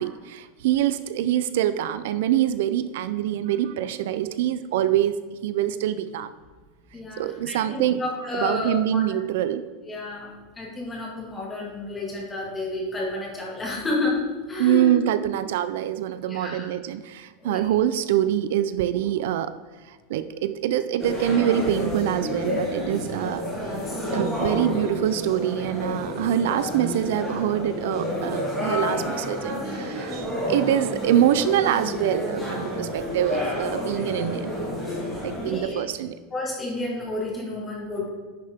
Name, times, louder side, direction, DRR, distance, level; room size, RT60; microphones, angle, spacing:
voice 1, 0.0-6.3 7.2-8.0 8.4-9.7 14.6-19.5 19.9-23.4 24.1-34.5 35.2-36.1, right 11 dB, 65° right, 12 dB, 0.4 m, -25 dB
voice 2, 6.9-9.0 9.9-10.3 10.6-14.2 14.5-15.0 16.2-16.7 17.4-17.8 23.0-23.3 23.7-24.1 34.7-34.8 35.4-35.8 36.3-38.1, left 2 dB, 10° left, -3 dB, 1.8 m, -31 dB
sound 1, 21.0-35.6, left 1 dB, 5° right, 2.8 m, -30 dB
10.5 x 6.5 x 3.5 m, 1.4 s
supercardioid pair, 175°, 0 cm